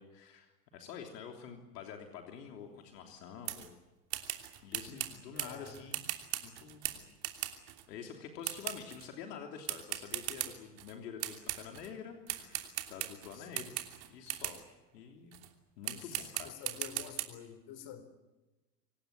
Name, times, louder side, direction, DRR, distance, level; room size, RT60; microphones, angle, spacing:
voice 1, 0.0-3.8 4.6-6.1 6.4-7.1 7.9-13.7 14.1-14.6 14.9-15.4 15.8-16.5, left 7 dB, 70° left, 3.3 m, -47 dB
sound 1, 3.5-3.7 4.1-7.8 8.4-9.1 9.7-10.9 11.2-11.9 12.3-14.6 15.3-15.5 15.8-17.2, right 15 dB, 50° right, 3.1 m, -39 dB
voice 2, 5.3-5.9 12.2-12.4 13.3-13.8 15.9-18.0, left 9 dB, 50° left, 4.2 m, -49 dB
26.0 x 18.0 x 10.0 m
hypercardioid pair, 90°, 50 cm